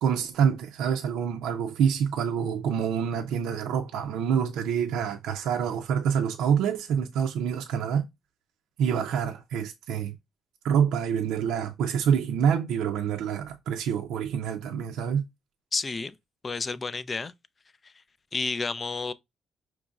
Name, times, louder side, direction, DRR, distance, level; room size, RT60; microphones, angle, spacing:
voice 1, 0.0-8.1 8.8-10.2 10.6-15.2, right 7 dB, 90° right, 0.4 m, -26 dB
voice 2, 15.7-16.2 16.4-17.3 17.8-17.9 18.3-19.1, left 4 dB, 35° left, 0.4 m, -30 dB
5.1 x 3.0 x 2.3 m
cardioid pair, 90°, 0 cm